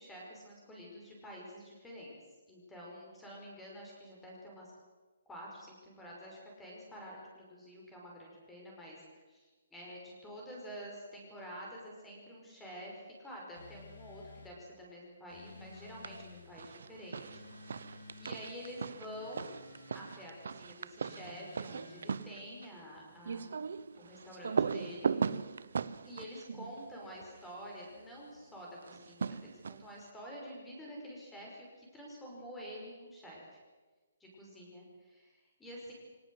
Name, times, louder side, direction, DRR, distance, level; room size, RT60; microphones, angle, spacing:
voice 1, 0.0-2.1 2.5-4.7 5.3-17.4 18.2-19.5 19.9-23.6 23.9-25.1 26.0-33.6 34.2-35.9, equal, 5° left, -3 dB, 5.4 m, -48 dB
sound 1, 13.5-14.6 15.3-16.5 17.2-18.5 19.1-20.2 21.0-22.1, left 4 dB, 85° left, 4.8 m, -54 dB
sound 2, 15.7-16.3 16.6-27.6 28.8-30.0, right 5 dB, 65° right, 0.9 m, -38 dB
24.0 x 18.5 x 8.0 m, 1.3 s
hypercardioid pair, 170°, 0 cm